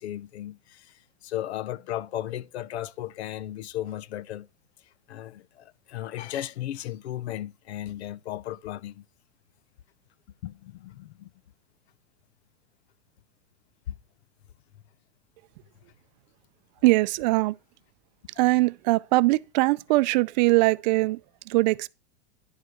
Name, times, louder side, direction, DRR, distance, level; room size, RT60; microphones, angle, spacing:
voice 1, 0.0-4.5 4.8-9.0 10.4-11.3 13.9-14.0, left 13 dB, 85° left, 0.7 m, -35 dB
voice 2, 16.8-17.6 18.4-21.2 21.5-21.9, right 21 dB, 45° right, 0.4 m, -21 dB
11.0 x 4.6 x 6.5 m
supercardioid pair, 140°, 32 cm